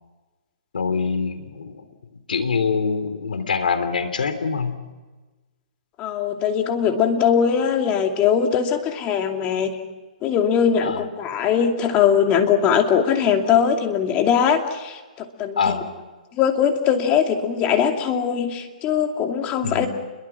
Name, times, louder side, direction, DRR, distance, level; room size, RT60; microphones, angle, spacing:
voice 1, 0.7-1.8 2.3-4.8 10.8-11.0 15.6-15.9 19.6-19.9, left 5 dB, 85° left, 10 dB, 3.4 m, -24 dB
voice 2, 6.0-9.8 10.2-15.8 16.4-19.9, left 7 dB, 25° left, 4 dB, 2.6 m, -21 dB
29.0 x 23.0 x 6.1 m, 1.2 s
hypercardioid pair, 150°, 5 cm